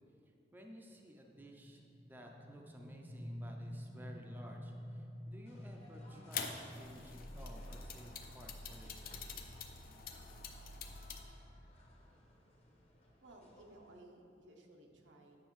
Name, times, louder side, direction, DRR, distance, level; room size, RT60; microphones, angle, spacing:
voice 1, 0.3-9.2, equal, 10° right, 0 dB, 0.4 m, -55 dB
sound 1, 1.3-12.8, equal, 90° left, 1.7 m, -51 dB
sound 2, 5.5-14.0, left 1 dB, 35° left, 1.0 m, -63 dB
sound 3, 6.3-11.2, left 5 dB, 50° left, 0.5 m, -46 dB
voice 2, 13.2-15.4, right 1 dB, 85° right, 2 dB, 0.8 m, -58 dB
8.8 x 6.1 x 3.1 m, 2.6 s
head